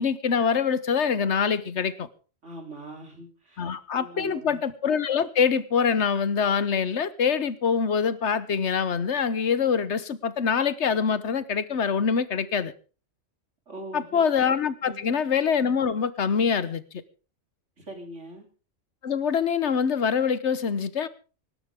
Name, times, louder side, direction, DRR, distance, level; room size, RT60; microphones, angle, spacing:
voice 1, 0.0-2.1 3.6-12.7 13.9-16.8 19.0-21.1, left 6 dB, 70° left, 1.3 m, -24 dB
voice 2, 2.4-3.7 4.0-4.6 13.7-14.2 14.8-15.2 17.8-18.5, right 2 dB, 85° right, 3.9 m, -41 dB
24.0 x 12.5 x 3.6 m
omnidirectional pair, 1.2 m